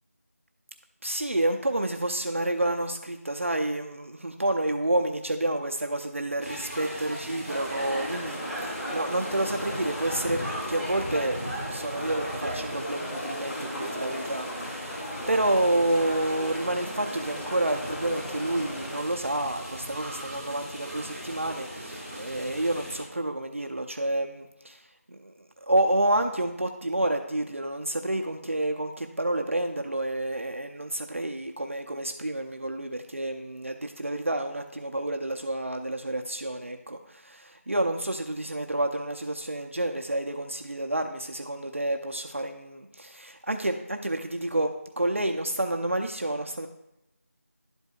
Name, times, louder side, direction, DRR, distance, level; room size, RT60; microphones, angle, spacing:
voice 1, 1.0-25.3 25.6-46.7, right 1 dB, 50° right, 4 dB, 0.6 m, -29 dB
sound 1, 6.4-23.0, equal, ahead, 2.6 m, -38 dB
sound 2, 7.5-19.0, equal, 65° left, 2.9 m, -38 dB
11.5 x 7.9 x 2.4 m, 0.89 s
figure-of-eight pair, 180°, 9 cm